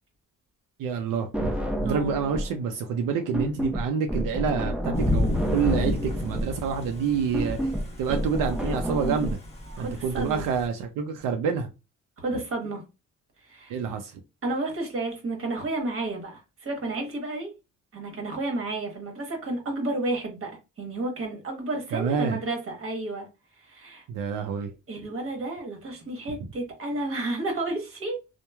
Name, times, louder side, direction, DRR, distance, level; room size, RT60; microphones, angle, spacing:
voice 1, 0.8-7.7 8.0-9.4 9.8-11.7 13.7-14.2 21.9-22.4 24.1-24.7 26.4-26.5, right 6 dB, 90° right, 0.5 m, -28 dB
sound 1, 1.3-2.6 2.9-9.3, equal, 5° right, 0.4 m, -30 dB
voice 2, 1.8-2.2 9.8-10.5 12.2-12.8 13.4-13.8 14.4-17.5 17.9-23.3 23.6-24.0 24.9-28.2, right 2 dB, 45° right, 1.1 m, -31 dB
Thunder / Rain, 4.9-10.7, left 1 dB, 20° left, 0.8 m, -31 dB
2.9 x 2.1 x 2.2 m
cardioid pair, 100°, 31 cm